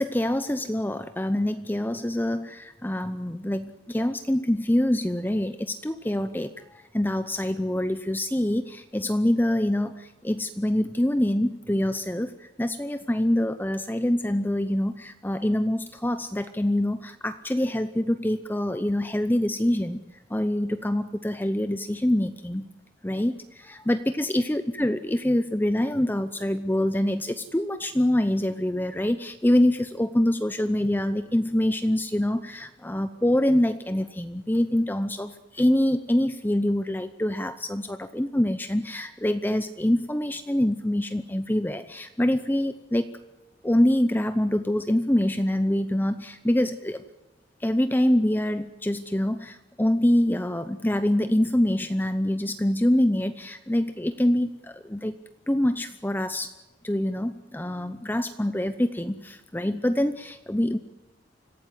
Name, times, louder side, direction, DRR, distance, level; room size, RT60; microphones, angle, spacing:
voice 1, 0.0-20.0 20.3-22.7 23.0-43.1 43.6-47.0 47.6-55.2 55.5-56.5 56.8-60.8, left 1 dB, 10° left, 10 dB, 0.8 m, -25 dB
26.0 x 16.5 x 9.4 m, 1.1 s
head